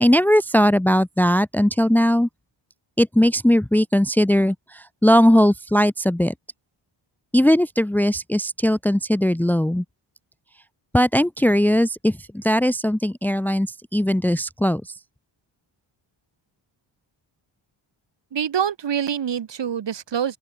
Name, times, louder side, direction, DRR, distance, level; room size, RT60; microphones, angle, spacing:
voice 1, 0.0-2.3 3.0-6.3 7.3-9.8 10.9-14.8, equal, 5° left, 0.9 m, -19 dB
voice 2, 18.3-20.4, right 8 dB, 60° right, 6.1 m, -25 dB
open air
wide cardioid pair, 135°, 48 cm